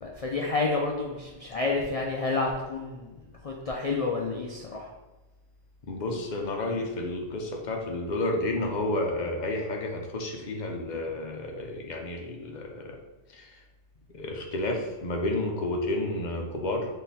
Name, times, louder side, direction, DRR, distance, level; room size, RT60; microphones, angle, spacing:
voice 1, 0.0-3.1 3.4-4.9, left 3 dB, 75° left, -1 dB, 0.3 m, -29 dB
voice 2, 5.9-13.0 13.3-13.5 14.1-16.9, left 2 dB, 45° left, 1 dB, 0.7 m, -31 dB
3.8 x 3.3 x 4.1 m, 1.1 s
omnidirectional pair, 1.3 m